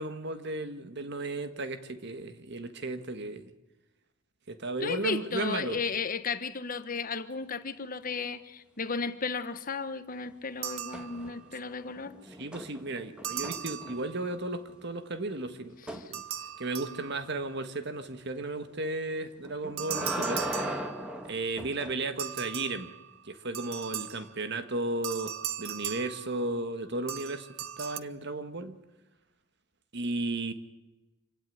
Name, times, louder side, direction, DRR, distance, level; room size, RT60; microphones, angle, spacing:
voice 1, 0.0-3.5 4.5-5.8 12.3-16.2 16.6-20.4 21.2-22.9 23.2-27.5 27.8-28.8 29.9-30.5, right 2 dB, 55° right, 1.7 m, -34 dB
voice 2, 4.8-12.1, left 5 dB, 40° left, 1.1 m, -34 dB
sound 1, 10.6-11.6 13.2-14.5 16.1-17.5 19.8-21.4 22.2-24.5 25.0-26.7 27.1-28.0, right 10 dB, 85° right, 0.9 m, -38 dB
sound 2, 10.9-11.6 11.9-14.3 15.9-16.1 19.4-22.0 24.2-24.3, equal, 5° right, 1.9 m, -38 dB
26.0 x 16.5 x 9.7 m
head